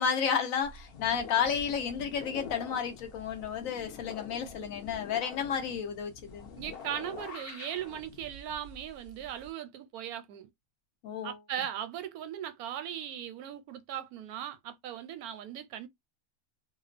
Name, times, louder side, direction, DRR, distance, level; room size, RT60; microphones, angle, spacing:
voice 1, 0.0-6.5 11.0-11.4, left 7 dB, 70° left, 1.1 m, -32 dB
sound 1, 0.6-9.5, left 5 dB, 55° left, 0.7 m, -46 dB
voice 2, 6.6-10.5 11.2-15.9, right 10 dB, 85° right, 1.1 m, -38 dB
2.9 x 2.0 x 2.4 m
omnidirectional pair, 1.5 m